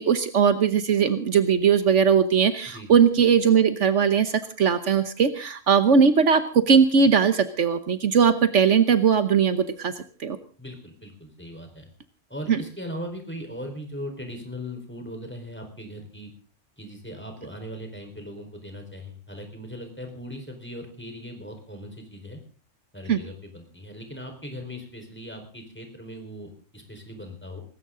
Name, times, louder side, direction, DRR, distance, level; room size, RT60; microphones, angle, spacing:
voice 1, 0.0-9.9 10.2-10.4 12.5-12.6 23.1-23.2, right 6 dB, 70° right, 11 dB, 1.3 m, -20 dB
voice 2, 10.6-11.9 12.3-16.3 16.8-22.4 22.9-27.6, equal, 10° left, 4 dB, 4.3 m, -39 dB
19.0 x 17.0 x 3.8 m, 0.38 s
omnidirectional pair, 1.3 m